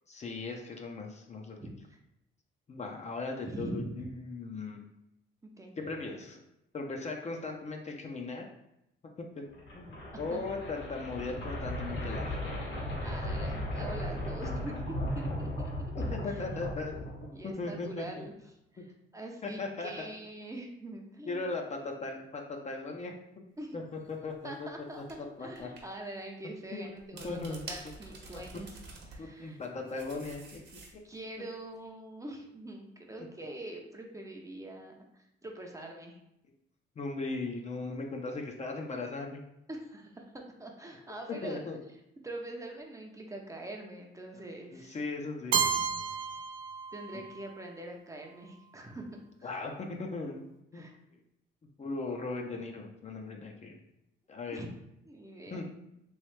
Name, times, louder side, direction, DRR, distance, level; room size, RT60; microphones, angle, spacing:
voice 1, 0.1-1.6 2.7-4.8 5.8-6.4 6.7-8.5 9.4-9.5 9.7-12.4 16.1-18.0 19.4-20.1 21.3-23.1 23.7-23.8 24.1-24.7 25.0-25.7 26.7-26.9 27.2-27.6 28.3-28.4 29.2-30.6 30.9-31.0 37.0-39.4 41.4-41.8 44.7-45.5 47.1-47.2 49.4-50.4 50.7-50.8 51.8-53.8 54.3-54.6 55.5-55.6, left 3 dB, 35° left, 2 dB, 0.6 m, -38 dB
voice 2, 1.6-2.0 3.4-4.1 5.6-5.8 10.3-10.4 12.3-12.4 13.0-14.8 15.1-16.3 17.3-18.3 18.7-18.9 19.1-21.5 23.6-23.8 24.4-28.8 29.1-29.6 31.0-36.2 39.7-41.6 42.2-45.0 46.0-46.4 46.9-49.1 49.4-49.6 50.7-51.0 54.5-54.7 55.1-55.6, right 1 dB, 15° right, 1 dB, 0.6 m, -44 dB
sound 1, 9.5-17.6, left 1 dB, 70° left, 1.4 m, -36 dB
sound 2, 24.1-24.3 25.1-25.2 25.6-25.8 27.0-29.2 29.6-31.2, right 3 dB, 60° right, 1.0 m, -47 dB
Keyboard (musical), 45.5-47.5, right 7 dB, 75° right, 0.5 m, -31 dB
3.1 x 3.1 x 3.2 m, 0.82 s
cardioid pair, 90°, 20 cm